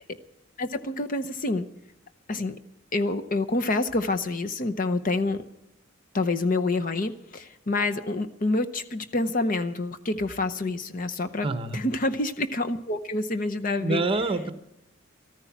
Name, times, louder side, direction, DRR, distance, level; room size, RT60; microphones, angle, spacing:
voice 1, 0.6-1.7 2.3-2.6 2.9-5.4 6.1-14.0, left 2 dB, 40° left, 9 dB, 0.8 m, -27 dB
voice 2, 11.4-11.8 13.8-14.5, right 2 dB, 25° right, 10 dB, 1.0 m, -26 dB
14.0 x 13.5 x 5.9 m, 0.84 s
head